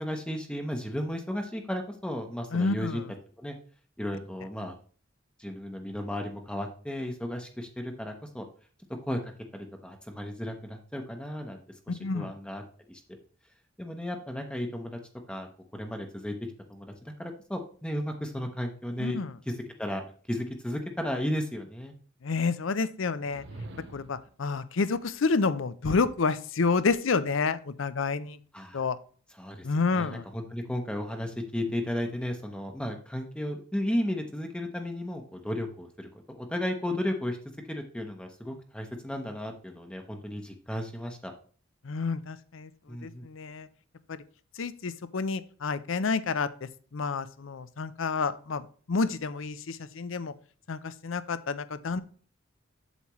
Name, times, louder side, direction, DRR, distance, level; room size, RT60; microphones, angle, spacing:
voice 1, 0.0-3.0 3.4-3.6 4.0-4.7 5.4-8.4 9.1-11.6 11.9-12.6 12.9-13.0 13.8-15.0 15.3-15.5 15.7-16.3 16.7-19.2 19.5-20.0 20.3-21.9 28.5-28.8 29.4-29.7 29.9-41.3 42.9-43.2, left 1 dB, 5° left, 3 dB, 0.8 m, -34 dB
voice 2, 2.5-3.1 11.9-12.3 19.0-19.3 22.2-23.4 23.9-28.4 28.7-29.0 29.6-30.2 41.8-42.7 43.0-43.7 44.1-44.2 44.6-50.3 50.7-52.0, left 4 dB, 70° left, 14 dB, 0.6 m, -29 dB
sound 1, 23.2-24.3, right 2 dB, 60° right, 0.9 m, -44 dB
8.1 x 7.2 x 3.1 m, 0.43 s
head